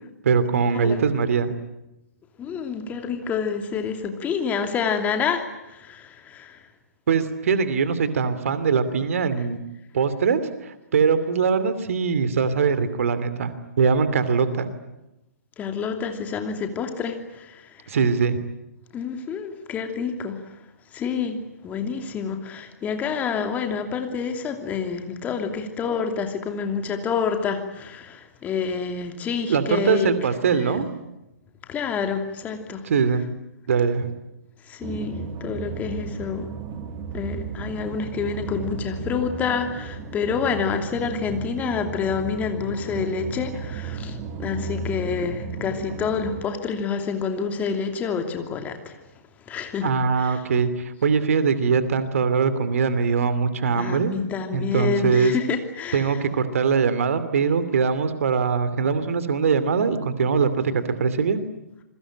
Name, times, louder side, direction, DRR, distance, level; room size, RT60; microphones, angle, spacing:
voice 1, 0.2-1.5 7.1-9.6 9.9-14.7 17.9-18.4 29.5-30.9 32.8-33.2 33.7-34.1 49.8-54.1 54.5-55.3 55.9-61.4, right 5 dB, 55° right, 13 dB, 2.7 m, -22 dB
voice 2, 2.4-6.6 7.5-7.6 15.6-17.8 18.9-20.4 20.9-30.1 30.5-30.8 31.7-32.8 34.7-36.5 37.1-49.0 49.5-50.4 53.7-56.2, left 6 dB, 15° left, 5 dB, 2.8 m, -28 dB
sound 1, 34.8-46.5, right 5 dB, 25° right, 2.6 m, -34 dB
27.5 x 22.5 x 9.0 m, 0.94 s
figure-of-eight pair, 120°, 9 cm